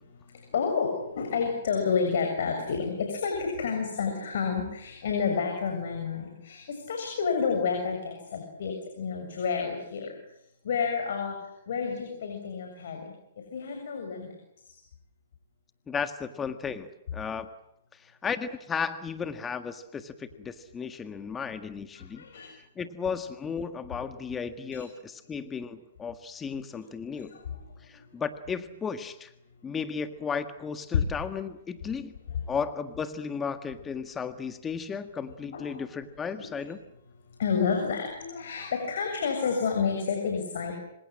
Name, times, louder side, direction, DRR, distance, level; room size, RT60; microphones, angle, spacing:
voice 1, 0.1-10.1 10.6-13.1 13.5-14.3 14.6-14.8 20.2-20.3 22.0-22.5 24.7-24.8 26.7-26.8 27.1-27.6 27.9-28.1 30.9-31.0 35.5-35.9 36.2-36.5 37.4-40.7, left 6 dB, 65° left, 3 dB, 7.0 m, -30 dB
voice 2, 15.9-17.5 17.9-22.2 22.5-27.4 27.8-29.3 29.6-32.2 32.5-36.8, left 6 dB, 15° left, 10 dB, 1.6 m, -34 dB
26.5 x 26.5 x 7.7 m, 0.78 s
hypercardioid pair, 130°, 0 cm